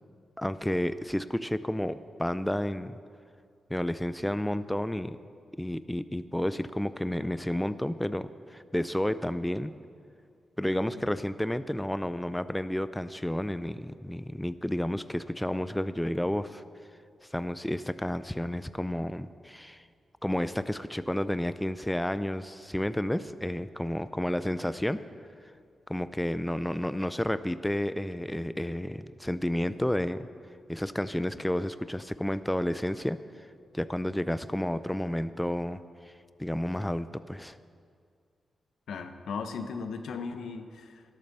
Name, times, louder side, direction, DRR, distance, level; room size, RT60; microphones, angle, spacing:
voice 1, 0.4-3.0 3.7-5.2 5.6-9.7 10.6-16.6 17.2-19.8 20.2-25.0 25.9-30.3 30.7-33.2 33.7-35.8 36.1-36.2 36.4-37.6, left 1 dB, 5° left, 13 dB, 0.4 m, -31 dB
voice 2, 38.9-41.0, left 5 dB, 85° left, 8 dB, 0.8 m, -37 dB
12.0 x 8.4 x 6.7 m, 2.3 s
cardioid pair, 65°, 0 cm